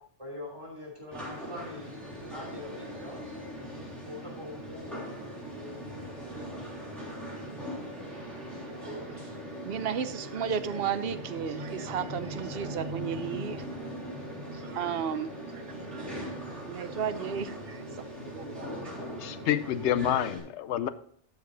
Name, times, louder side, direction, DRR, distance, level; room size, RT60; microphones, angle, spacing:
voice 1, 0.2-3.2 4.1-5.1, left 1 dB, 25° right, 3.2 m, -43 dB
sound 1, 1.1-20.4, equal, ahead, 3.6 m, -40 dB
voice 2, 8.8-9.3 9.6-13.7 14.5-15.3 15.9-16.1 16.6-17.8 18.2-18.9, right 7 dB, 60° right, 0.9 m, -34 dB
voice 3, 19.2-20.9, left 10 dB, 75° left, 0.9 m, -28 dB
12.0 x 6.8 x 4.0 m
omnidirectional pair, 1.2 m